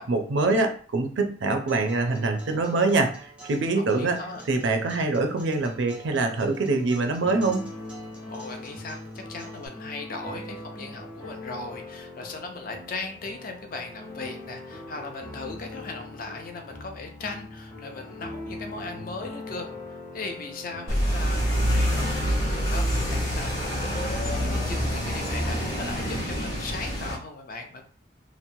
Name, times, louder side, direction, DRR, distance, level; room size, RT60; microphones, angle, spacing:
voice 1, 0.0-4.2 4.5-7.6, right 3 dB, 70° right, 5 dB, 0.4 m, -24 dB
Acoustic guitar, 1.7-9.7, right 2 dB, 5° right, 0.5 m, -48 dB
voice 2, 3.9-4.4 8.3-27.8, left 3 dB, 45° left, 4 dB, 0.4 m, -38 dB
sound 1, 7.2-23.2, left 2 dB, 25° left, 0.9 m, -41 dB
sound 2, 20.9-27.2, equal, 85° left, 0.9 m, -26 dB
2.9 x 2.0 x 2.6 m, 0.43 s
head